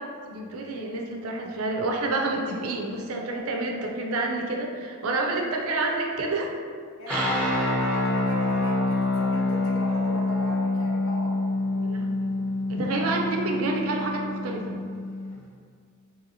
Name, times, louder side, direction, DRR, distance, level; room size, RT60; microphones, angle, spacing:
voice 1, 0.0-6.5 7.1-7.5 11.7-12.3 12.7-14.8, right 2 dB, 80° right, 1 dB, 0.4 m, -29 dB
voice 2, 7.0-11.3 12.9-13.1, left 1 dB, 70° left, -4 dB, 0.7 m, -39 dB
sound 1, 7.1-15.3, left 2 dB, 5° left, 0.5 m, -26 dB
2.8 x 2.7 x 2.7 m, 2.1 s
head